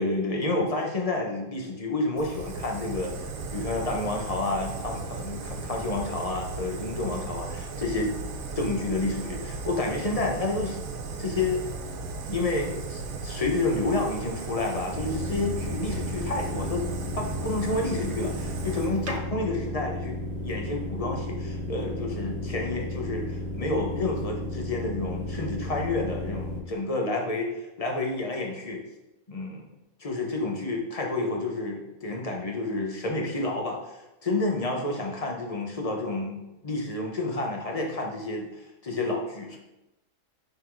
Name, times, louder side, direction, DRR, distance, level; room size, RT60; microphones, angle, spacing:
voice 1, 0.0-3.1 3.5-8.2 8.6-10.8 11.2-11.6 12.3-16.8 17.2-28.8 29.3-39.6, left 2 dB, 30° left, 1 dB, 0.8 m, -30 dB
Fire, 2.2-19.2, right 3 dB, 85° right, 1.3 m, -36 dB
sound 1, 14.9-26.6, left 1 dB, 55° right, 1.5 m, -34 dB
5.5 x 4.0 x 4.6 m, 0.95 s
omnidirectional pair, 1.7 m